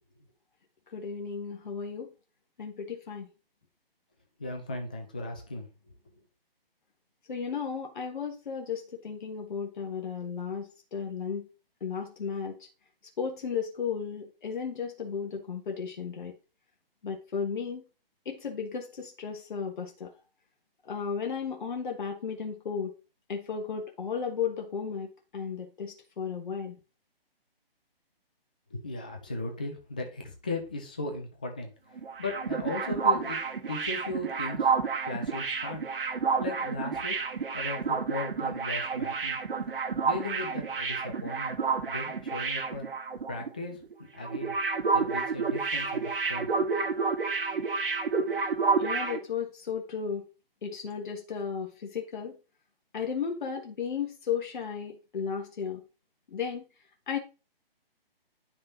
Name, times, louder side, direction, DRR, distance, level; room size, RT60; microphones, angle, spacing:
voice 1, 0.9-2.1 2.6-3.3 7.3-11.5 11.8-12.7 13.2-16.3 17.0-17.8 18.2-20.1 20.8-22.9 23.3-26.8 48.8-50.2 50.6-52.4 52.9-55.8 56.3-56.6 57.1-57.2, left 6 dB, 55° left, 2 dB, 1.7 m, -34 dB
voice 2, 4.4-5.7 28.7-31.7 32.2-33.4 33.7-34.8 35.0-35.9 36.1-37.2 37.5-39.4 40.0-41.6 41.9-42.9 43.3-43.8 44.1-44.6 44.9-46.7, left 2 dB, 10° left, 3 dB, 0.4 m, -37 dB
sound 1, 32.0-43.5 43.8-43.9 44.2-49.2, right 5 dB, 65° right, 1.7 m, -30 dB
9.7 x 5.5 x 3.9 m, 0.31 s
figure-of-eight pair, 145°, 30 cm